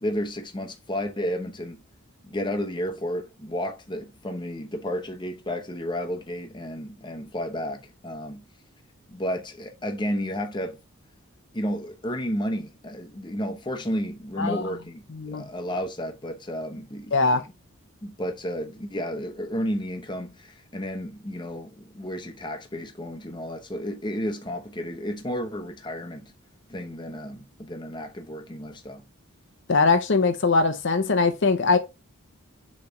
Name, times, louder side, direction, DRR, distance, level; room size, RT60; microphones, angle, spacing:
voice 1, 0.0-1.8 2.2-8.4 9.1-10.8 11.5-17.4 18.0-26.3 26.7-29.1, equal, 20° left, 0.9 m, -32 dB
voice 2, 17.1-17.4 29.7-31.8, left 3 dB, 55° left, 0.7 m, -21 dB
7.0 x 3.3 x 4.2 m
head